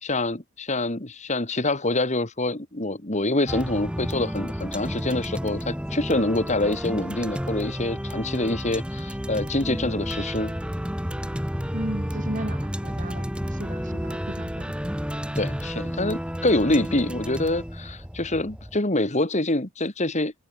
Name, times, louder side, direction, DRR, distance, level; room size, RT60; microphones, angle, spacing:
voice 1, 0.0-10.5 15.4-20.3, left 2 dB, 30° left, 2.2 m, -26 dB
sound 1, 3.5-18.8, equal, 5° right, 3.7 m, -31 dB
voice 2, 11.7-14.7, right 1 dB, 35° right, 2.2 m, -35 dB
head